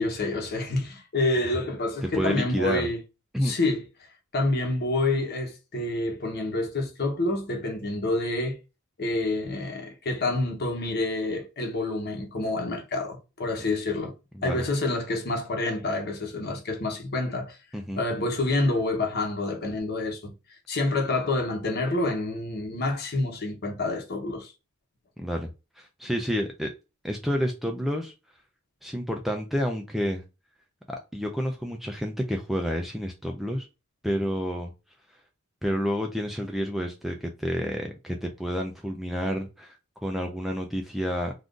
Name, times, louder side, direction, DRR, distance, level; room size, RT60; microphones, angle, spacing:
voice 1, 0.0-3.0 3.4-3.8 4.3-8.6 9.0-14.1 14.4-17.6 18.0-20.3 20.7-24.5, left 2 dB, 45° left, 0.9 m, -28 dB
voice 2, 2.0-2.9 3.3-3.5 14.4-14.7 17.7-18.0 25.2-25.5 25.8-26.7 27.0-28.1 28.8-30.2 30.9-33.7 34.0-34.7 35.6-41.3, equal, ahead, 0.3 m, -29 dB
2.5 x 2.4 x 3.6 m
head